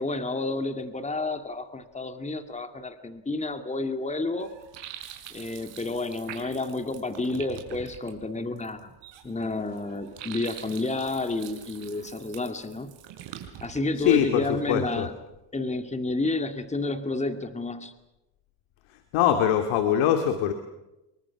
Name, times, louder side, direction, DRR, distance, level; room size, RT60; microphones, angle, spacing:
voice 1, 0.0-4.5 5.3-8.9 9.2-12.9 13.6-15.1 15.5-17.9, left 2 dB, 15° left, 8 dB, 2.2 m, -30 dB
sound 1, 4.4-14.2, right 10 dB, 65° right, 5.3 m, -45 dB
voice 2, 14.0-15.1 19.1-20.5, left 9 dB, 85° left, 7 dB, 2.3 m, -23 dB
28.5 x 23.5 x 6.0 m, 0.97 s
supercardioid pair, 90°, 47 cm